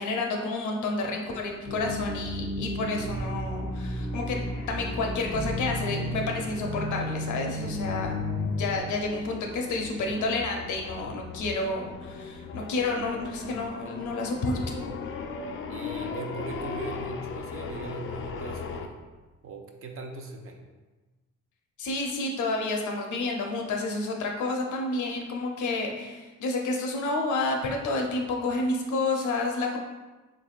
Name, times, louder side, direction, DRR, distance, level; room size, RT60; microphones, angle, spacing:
voice 1, 0.0-4.4 4.7-8.2 8.6-14.6 21.8-29.8, left 2 dB, 75° left, 1 dB, 0.7 m, -30 dB
sound 1, 1.6-8.8, left 1 dB, 10° right, 0.8 m, -32 dB
sound 2, 2.9-18.9, left 4 dB, 45° left, 0.4 m, -39 dB
voice 2, 15.7-19.0 19.4-20.6, right 3 dB, 45° right, 3 dB, 0.5 m, -40 dB
3.5 x 3.4 x 2.4 m, 1.2 s
cardioid pair, 90°, 30 cm